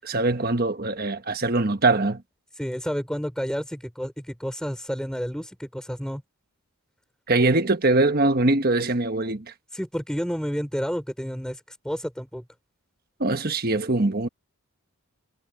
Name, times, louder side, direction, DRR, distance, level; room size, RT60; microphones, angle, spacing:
voice 1, 0.0-2.2 7.3-9.5 13.2-14.3, right 2 dB, 40° right, 1.3 m, -22 dB
voice 2, 2.6-6.2 9.7-12.4, equal, 5° left, 5.1 m, -30 dB
head